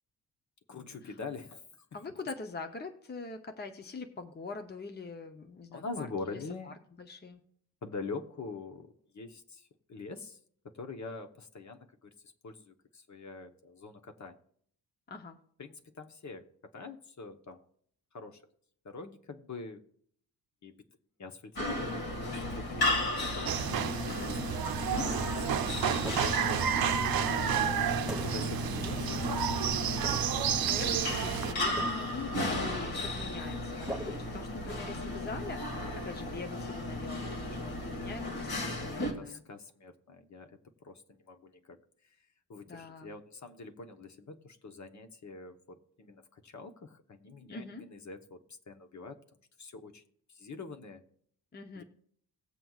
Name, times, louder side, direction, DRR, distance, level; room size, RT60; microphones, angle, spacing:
voice 1, 0.7-1.6 5.7-6.7 7.8-10.4 10.7-14.4 15.6-16.5 16.7-17.6 18.1-18.4 18.8-19.8 20.6-20.7 21.2-24.3 24.9-25.0 25.3-27.2 28.2-29.6 37.2-37.6 37.9-38.0 39.1-41.8 42.0-42.1 42.5-49.2 49.6-50.0 50.3-51.0 51.8-51.9, left 4 dB, 45° left, 7 dB, 1.0 m, -44 dB
voice 2, 1.9-7.4 15.1-15.4 24.1-24.4 24.6-24.9 28.6-29.3 30.3-39.4 42.7-43.1 47.5-47.8 51.5-51.8, left 4 dB, 25° left, 6 dB, 0.7 m, -44 dB
sound 1, 21.6-39.1, left 2 dB, 60° left, 2.2 m, -35 dB
sound 2, 23.5-31.5, right 9 dB, 65° right, 0.7 m, -31 dB
sound 3, 26.0-26.6 28.1-28.7 30.0-30.6 31.8-32.4 33.9-34.9, equal, ahead, 1.1 m, -41 dB
18.5 x 7.6 x 2.4 m, 0.62 s
wide cardioid pair, 120°, 40 cm